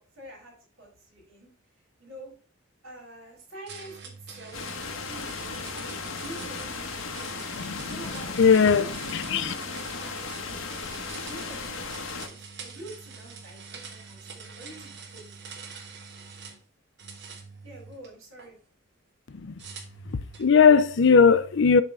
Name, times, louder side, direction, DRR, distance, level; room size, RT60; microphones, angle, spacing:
voice 1, 0.0-1.5 2.0-2.3 2.8-7.3 7.7-15.4 17.6-18.6, right 1 dB, 80° right, 3.7 m, -46 dB
sound 1, 3.7-16.6 17.0-18.5 19.6-20.5, right 5 dB, 55° right, 1.3 m, -45 dB
sound 2, 4.5-12.3, left 4 dB, 85° left, 1.1 m, -36 dB
voice 2, 8.4-8.8 9.1-9.5 19.4-19.6 20.1-21.8, left 6 dB, 65° left, 0.5 m, -19 dB
7.4 x 3.7 x 5.5 m
head